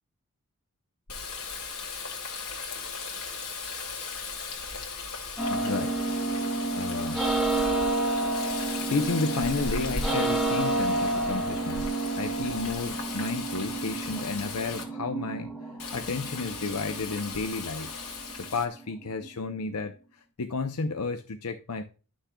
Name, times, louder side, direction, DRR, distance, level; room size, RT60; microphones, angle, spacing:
Water tap faucet, 1.1-14.8 15.8-18.7, left 4 dB, 70° left, 2.1 m, -37 dB
sound 1, 5.4-19.3, right 2 dB, ahead, 1.0 m, -30 dB
voice 1, 5.5-6.3 6.7-7.3 8.9-18.0 18.4-21.8, left 4 dB, 90° left, 0.7 m, -32 dB
11.5 x 6.3 x 2.2 m
head